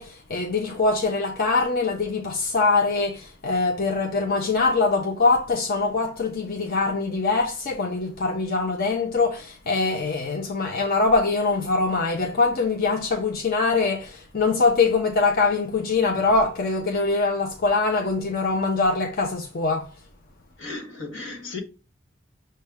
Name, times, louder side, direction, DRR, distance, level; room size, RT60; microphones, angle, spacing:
voice 1, 0.0-19.9, left 3 dB, 50° left, 0.6 m, -23 dB
voice 2, 20.6-21.6, left 3 dB, 80° left, 1.4 m, -35 dB
6.5 x 2.2 x 3.4 m
head